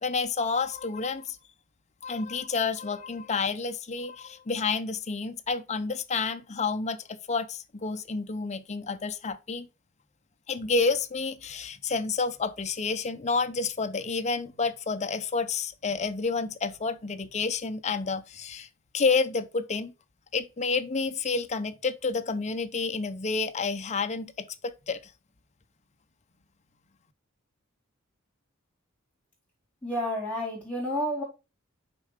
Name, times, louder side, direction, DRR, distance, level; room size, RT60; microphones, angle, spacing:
voice 1, 0.0-1.4 2.0-9.7 10.5-18.7 18.9-19.9 20.3-25.0, left 4 dB, 35° left, 0.7 m, -29 dB
voice 2, 29.8-31.2, equal, 5° left, 4.4 m, -30 dB
6.9 x 4.6 x 4.9 m
head